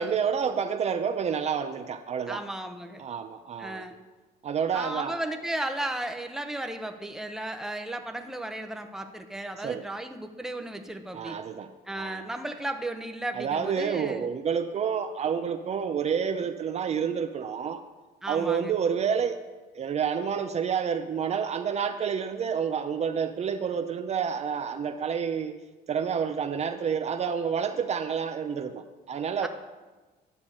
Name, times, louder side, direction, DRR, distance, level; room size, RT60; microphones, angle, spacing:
voice 1, 0.0-2.4 3.0-3.9 4.4-5.2 9.6-9.9 11.1-12.3 13.3-17.8 18.3-19.4 19.7-25.6 25.9-29.5, right 7 dB, 40° right, 8 dB, 0.6 m, -29 dB
voice 2, 2.3-3.0 3.6-4.0 4.7-11.4 11.9-14.3 18.2-18.7 29.4-29.5, right 1 dB, 5° right, 5 dB, 0.8 m, -35 dB
11.0 x 6.7 x 5.4 m, 1.2 s
cardioid pair, 110°, 17 cm